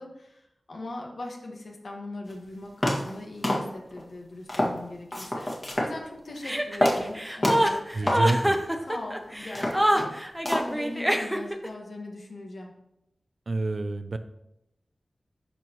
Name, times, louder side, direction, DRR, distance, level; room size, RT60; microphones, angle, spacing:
voice 1, 0.0-8.4 8.9-12.7, left 2 dB, 75° left, 0 dB, 1.5 m, -40 dB
sound 1, 2.3-2.4 2.8-3.2 3.4-4.0 4.5-4.8 5.1-5.9 6.3-6.5 6.8-7.1 7.4-7.8 8.1-8.3 8.8-8.9 9.4-10.2 10.4-10.8, left 1 dB, 35° left, 1.8 m, -27 dB
Chuckle chortle, 6.4-11.7, equal, 5° right, 0.8 m, -25 dB
voice 2, 7.9-8.6 13.5-14.2, right 2 dB, 60° right, 10 dB, 0.5 m, -27 dB
12.5 x 4.5 x 3.0 m, 0.83 s
wide cardioid pair, 80°, 0 cm